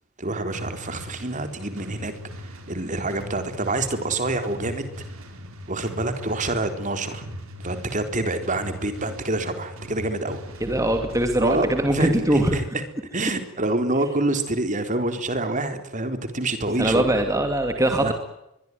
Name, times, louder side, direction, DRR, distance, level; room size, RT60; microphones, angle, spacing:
voice 1, 0.2-4.9 5.7-7.2 7.6-10.4 11.4-12.6 13.1-17.0 18.0-18.1, right 2 dB, 35° right, 8 dB, 4.0 m, -27 dB
sound 1, 0.5-11.3, equal, 70° right, 5.2 m, -39 dB
voice 2, 10.6-12.6 16.8-18.1, right 1 dB, 15° right, 5 dB, 2.5 m, -22 dB
23.5 x 22.5 x 9.5 m, 0.86 s
head